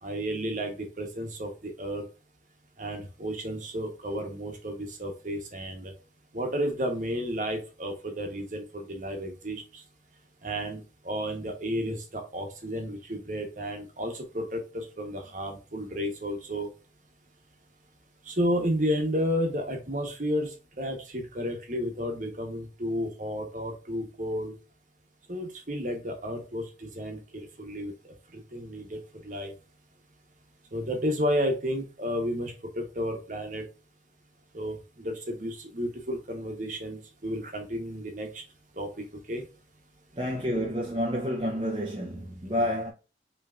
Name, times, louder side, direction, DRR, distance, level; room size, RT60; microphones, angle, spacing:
voice 1, 0.0-2.1 2.8-5.9 6.3-9.6 10.4-16.7 18.3-24.5 25.3-29.0 29.2-29.5 30.7-33.6 34.5-38.4 38.8-38.9 39.3-39.4, equal, 45° right, 1.1 m, -32 dB
voice 2, 40.2-42.9, equal, 30° right, 0.7 m, -29 dB
5.5 x 3.2 x 2.4 m
head